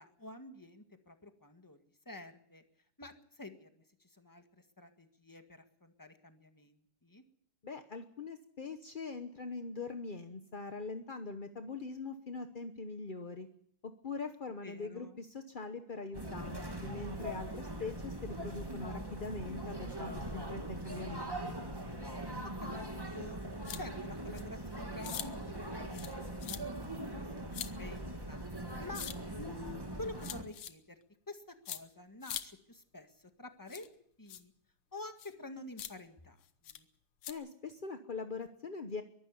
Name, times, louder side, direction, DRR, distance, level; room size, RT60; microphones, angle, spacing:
voice 1, 0.0-2.6 3.0-4.4 4.8-7.2 14.6-15.2 22.4-23.4 23.7-26.7 27.2-29.0 29.4-31.0 31.3-33.9 34.2-34.5 34.9-36.4 36.7-36.9, left 2 dB, 10° left, 7 dB, 1.5 m, -49 dB
voice 2, 7.6-13.5 13.8-21.4 37.3-39.0, left 4 dB, 45° left, 8 dB, 0.6 m, -42 dB
sound 1, 16.1-30.4, right 1 dB, 10° right, 1.8 m, -41 dB
sound 2, 23.6-23.8 24.3-24.4 25.0-25.3 25.9-26.1 26.4-26.6 27.5-27.7 28.9-29.1 30.2-30.7 31.7-31.8 32.2-32.4 33.7-33.9 34.3-34.4 35.2-35.3 35.8-35.9 36.6-36.8 37.2-37.3, left 10 dB, 75° left, 1.9 m, -42 dB
23.0 x 12.5 x 9.7 m, 0.67 s
omnidirectional pair, 2.4 m